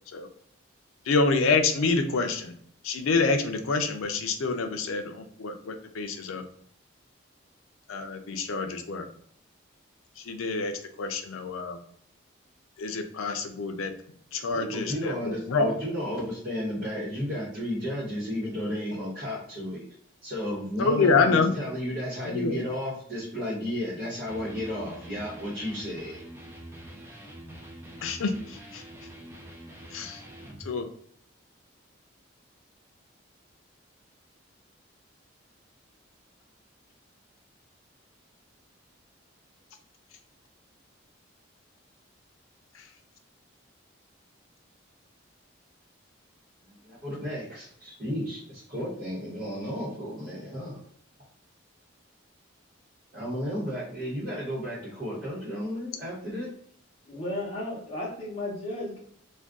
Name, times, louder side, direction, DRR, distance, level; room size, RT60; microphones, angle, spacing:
voice 1, 1.1-2.5 2.8-6.4 7.9-9.0 10.2-10.7 11.0-11.8 12.8-13.9 14.3-15.7 20.8-21.5 22.2-22.6 28.0-28.8 29.9-30.2 30.7-30.9 42.7-42.8, left 4 dB, 90° left, 6 dB, 0.4 m, -27 dB
voice 2, 14.5-19.8 20.2-26.2 46.6-50.8 53.1-56.5, equal, 45° right, -10 dB, 1.0 m, -33 dB
Electric guitar, 24.2-30.7, right 1 dB, 10° right, 0.4 m, -45 dB
voice 3, 57.1-59.0, left 1 dB, 30° left, -5 dB, 0.8 m, -34 dB
2.5 x 2.3 x 3.5 m, 0.63 s
head